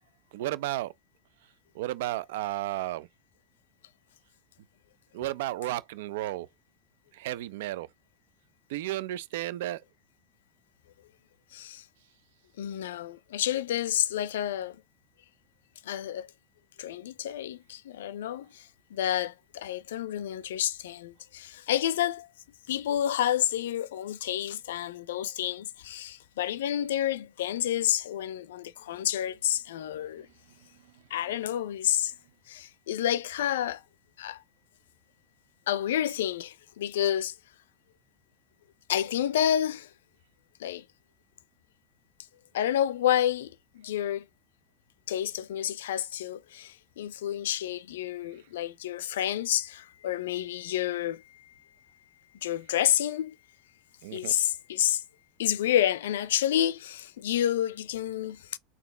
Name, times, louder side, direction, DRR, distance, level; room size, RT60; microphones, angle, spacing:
voice 1, 0.3-0.9 1.7-3.1 5.1-6.5 7.1-7.9 8.7-9.8 54.0-54.3, right 15 dB, 75° right, 0.4 m, -33 dB
voice 2, 11.5-11.9 12.6-14.8 15.8-16.3 16.8-22.3 22.7-30.3 31.1-32.1 32.5-33.8 34.2-34.4 35.7-37.4 38.9-39.9 40.6-40.8 42.5-44.3 45.1-51.6 52.4-53.4 54.1-55.0 55.4-58.6, left 11 dB, 85° left, 0.4 m, -29 dB
4.2 x 2.7 x 3.3 m
supercardioid pair, 115°, 0 cm